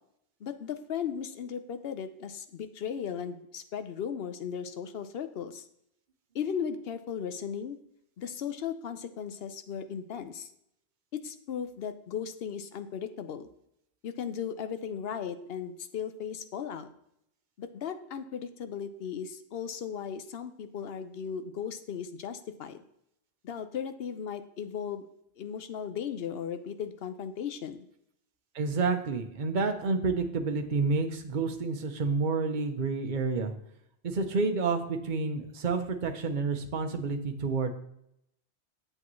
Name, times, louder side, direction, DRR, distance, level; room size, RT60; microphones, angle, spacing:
voice 1, 0.4-5.7 6.3-7.8 8.2-10.5 11.2-13.5 14.0-16.9 17.6-22.8 23.4-25.1 25.4-27.8, left 7 dB, 65° left, 10 dB, 0.9 m, -36 dB
voice 2, 28.5-33.5 34.0-37.7, right 4 dB, 50° right, 6 dB, 0.9 m, -29 dB
8.4 x 7.7 x 3.1 m, 0.76 s
omnidirectional pair, 1.1 m